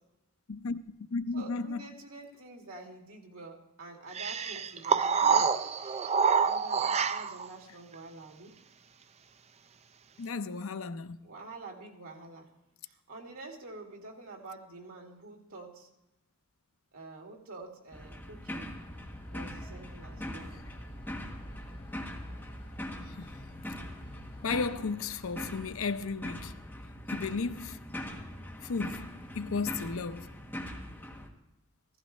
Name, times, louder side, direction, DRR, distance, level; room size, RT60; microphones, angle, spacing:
voice 1, 0.5-0.8 1.1-1.8 5.2-5.4 10.2-11.2 23.2-23.3 24.4-26.5 27.1-27.8 28.6-30.3, left 4 dB, 70° left, 0.6 m, -34 dB
voice 2, 1.3-5.5 6.4-8.6 11.2-12.5 12.8-15.9 16.9-18.7 19.3-20.6, right 3 dB, 85° right, 2.5 m, -47 dB
sound 1, 4.1-7.5, right 6 dB, 30° right, 0.4 m, -27 dB
sound 2, 17.9-31.3, left 1 dB, 10° left, 1.5 m, -42 dB
sound 3, 18.7-24.6, equal, 25° left, 1.4 m, -50 dB
15.5 x 14.5 x 3.2 m
head